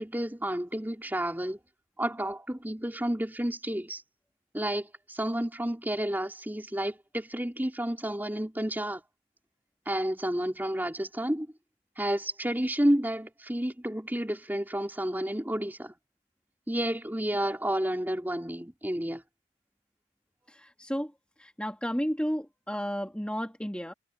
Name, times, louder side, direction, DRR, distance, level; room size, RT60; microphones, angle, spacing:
voice 1, 0.0-1.6 2.0-4.0 4.5-9.0 9.9-11.5 12.0-15.9 16.7-19.2, right 1 dB, 10° right, 3.5 m, -30 dB
voice 2, 20.5-21.1 21.4-23.9, equal, 5° left, 2.1 m, -32 dB
head